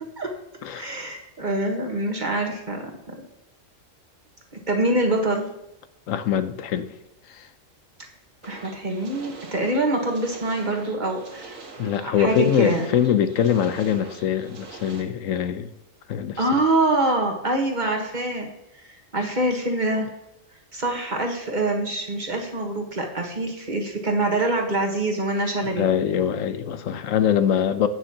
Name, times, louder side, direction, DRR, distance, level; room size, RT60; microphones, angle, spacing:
voice 1, 0.7-3.3 4.7-5.5 8.5-11.6 12.0-12.8 16.4-18.5 18.8-18.9 19.1-20.1 20.7-25.9, right 2 dB, 35° right, 2 dB, 1.5 m, -25 dB
voice 2, 6.1-6.9 7.3-7.5 11.8-15.7 16.1-16.4 25.7-27.9, left 9 dB, 85° left, 11 dB, 1.1 m, -23 dB
sound 1, 8.4-15.0, right 3 dB, 90° right, 1.7 m, -43 dB
17.0 x 6.2 x 2.9 m, 0.88 s
omnidirectional pair, 1.3 m